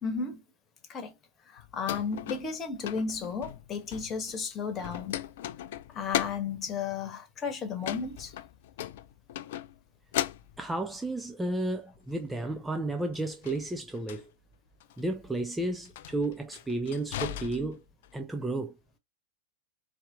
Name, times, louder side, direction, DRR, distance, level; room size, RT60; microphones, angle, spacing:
voice 1, 0.0-0.4 0.9-1.1 1.5-5.2 5.9-8.3, left 5 dB, 25° left, 1.2 m, -34 dB
sound 1, 1.6-4.4 4.7-6.6 7.8-9.8 10.1-11.0 13.1-14.2 14.8-15.0 15.8-18.1, left 12 dB, 55° left, 0.3 m, -37 dB
voice 2, 10.6-14.3 15.0-17.8 18.1-18.7, right 2 dB, 5° right, 0.5 m, -32 dB
4.2 x 3.4 x 2.5 m
figure-of-eight pair, 90°, 0 cm